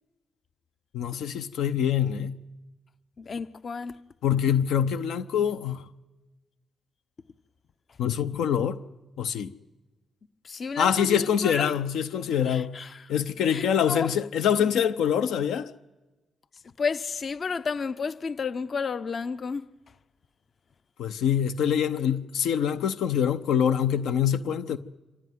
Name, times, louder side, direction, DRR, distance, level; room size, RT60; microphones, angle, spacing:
voice 1, 0.9-2.3 4.2-5.8 8.0-8.8 9.2-9.5 10.8-12.7 13.1-15.7 21.0-24.8, left 8 dB, 85° left, 0.7 m, -25 dB
voice 2, 3.2-4.0 10.4-11.7 12.5-13.1 13.5-14.1 16.8-19.6, left 5 dB, 50° left, 0.8 m, -32 dB
25.0 x 16.5 x 9.4 m
supercardioid pair, 60°, 0 cm